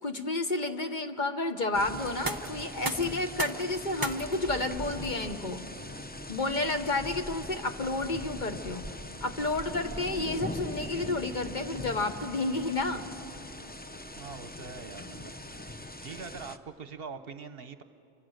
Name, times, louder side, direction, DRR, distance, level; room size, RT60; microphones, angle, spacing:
voice 1, 0.0-5.7 6.3-8.9 9.2-13.0, left 2 dB, 45° left, 6 dB, 1.2 m, -31 dB
sound 1, 1.7-16.6, left 1 dB, 10° left, 0.5 m, -41 dB
sound 2, 2.0-13.8, right 3 dB, 20° right, 0.8 m, -44 dB
voice 2, 6.6-6.9 14.1-15.7 16.0-17.8, right 5 dB, 60° right, 11 dB, 1.0 m, -44 dB
29.0 x 24.5 x 6.5 m, 2.6 s
omnidirectional pair, 1.2 m